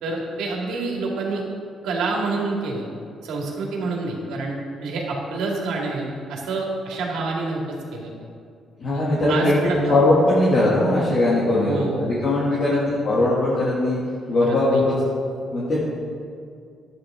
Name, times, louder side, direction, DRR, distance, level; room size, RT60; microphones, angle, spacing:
voice 1, 0.0-1.4 1.8-2.9 3.2-4.5 4.8-8.1 8.9-9.0 9.3-10.0 11.7-12.1 12.5-12.8 14.4-14.8, right 3 dB, 85° right, -2 dB, 2.1 m, -27 dB
voice 2, 8.8-9.6 9.9-14.0 14.3-15.2 15.5-15.8, left 2 dB, 55° left, -8 dB, 2.4 m, -20 dB
11.5 x 9.4 x 3.7 m, 2.4 s
cardioid pair, 90°, 0 cm